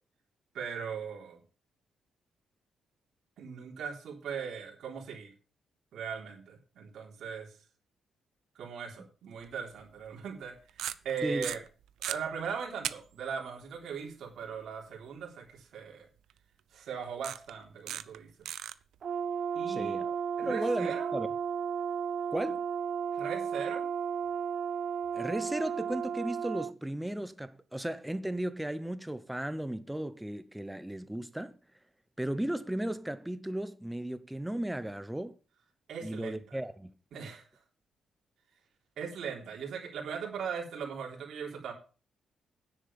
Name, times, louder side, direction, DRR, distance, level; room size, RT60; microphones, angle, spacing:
voice 1, 0.5-1.4 3.4-5.3 5.9-7.5 8.6-10.5 10.9-11.6 12.1-16.1 16.7-18.3 19.5-20.0 20.4-21.1 23.2-23.8 35.9-36.4 37.1-37.4 39.0-41.7, right 6 dB, 60° right, 3.7 m, -39 dB
sound 1, 9.4-9.5 10.7-11.1 11.4-12.2 12.8-12.9 13.3-13.4 16.3-16.4 17.2-17.5 17.9-18.2 18.5-18.7, right 11 dB, 90° right, 0.7 m, -35 dB
voice 2, 11.2-11.5 19.7-20.2 20.4-21.3 22.3-22.6 25.1-31.6 32.2-35.3 36.0-36.9, right 1 dB, 5° right, 0.7 m, -35 dB
Brass instrument, 19.0-26.7, right 7 dB, 40° right, 0.6 m, -34 dB
10.0 x 7.5 x 7.0 m
cardioid pair, 175°, 0 cm